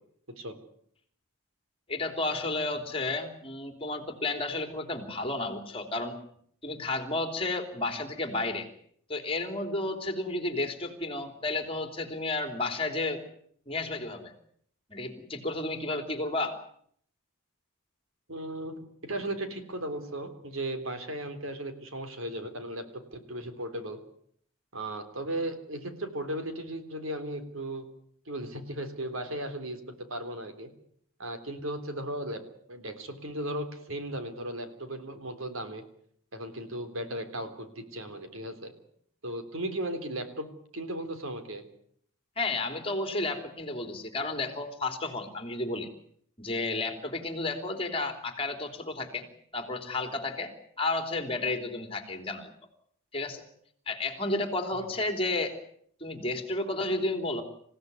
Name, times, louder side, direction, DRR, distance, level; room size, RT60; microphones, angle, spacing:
voice 1, 1.9-6.2 6.6-8.7 9.1-13.2 13.7-14.3 14.9-16.6 42.4-45.9 46.4-49.3 49.5-52.5 53.1-53.4 53.9-55.6 56.0-57.4, left 2 dB, 25° left, 6 dB, 3.2 m, -32 dB
voice 2, 18.3-18.7 19.0-24.0 24.7-27.9 28.3-30.7 31.2-32.4 32.7-35.8 36.3-38.7 39.2-40.5 40.7-41.7 54.7-54.9, right 1 dB, 70° right, 8 dB, 3.7 m, -36 dB
27.5 x 16.5 x 9.6 m, 0.66 s
head